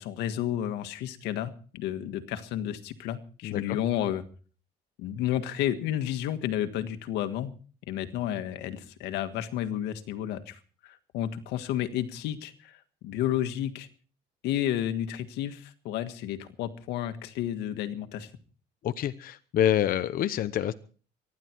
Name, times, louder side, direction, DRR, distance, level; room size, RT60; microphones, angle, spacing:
voice 1, 0.0-4.2 5.0-7.5 7.9-13.9 14.4-18.3, left 11 dB, 90° left, 10 dB, 1.7 m, -31 dB
voice 2, 3.4-3.8 18.8-20.7, left 11 dB, 60° left, 11 dB, 0.9 m, -27 dB
24.0 x 11.5 x 4.6 m, 0.41 s
cardioid pair, 110°, 17 cm